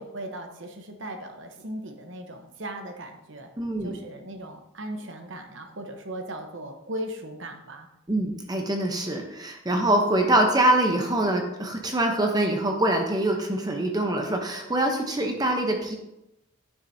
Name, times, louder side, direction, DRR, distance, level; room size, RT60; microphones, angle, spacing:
voice 1, 0.0-3.5 3.8-7.9, right 1 dB, 60° right, 5 dB, 1.0 m, -37 dB
voice 2, 3.6-3.9 8.1-16.0, right 1 dB, 20° right, 3 dB, 0.8 m, -24 dB
9.7 x 7.1 x 2.8 m, 0.90 s
head